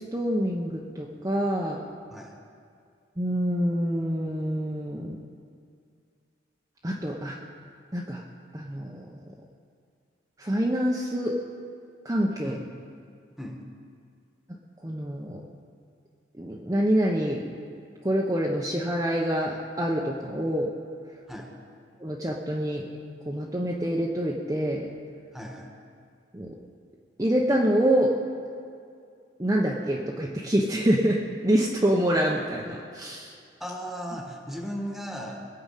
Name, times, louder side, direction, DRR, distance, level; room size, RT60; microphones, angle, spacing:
voice 1, 0.0-1.8 3.2-5.2 6.8-7.4 7.9-8.2 8.5-9.1 10.4-11.4 12.0-12.5 14.8-15.4 16.4-17.4 18.0-20.7 22.0-22.9 23.3-24.9 26.3-26.5 27.2-28.2 29.4-33.3, equal, 20° right, -3 dB, 0.8 m, -26 dB
voice 2, 25.3-25.7 33.6-35.5, equal, ahead, 1 dB, 1.4 m, -36 dB
21.5 x 7.8 x 5.7 m, 2.3 s
head